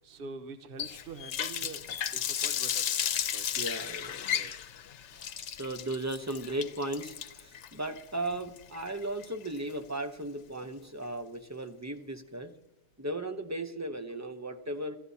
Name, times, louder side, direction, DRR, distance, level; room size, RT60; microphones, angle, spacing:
voice 1, 0.0-1.8 2.1-2.8 3.3-3.5 4.3-4.5 10.7-10.8, right 4 dB, 55° right, 8 dB, 1.1 m, -45 dB
Water tap faucet, 0.8-9.7, left 9 dB, 90° left, 1.0 m, -34 dB
voice 2, 3.6-4.2 5.1-12.5 13.0-15.0, right 1 dB, 15° right, 7 dB, 0.7 m, -36 dB
26.5 x 13.5 x 2.8 m, 0.89 s
omnidirectional pair, 1.2 m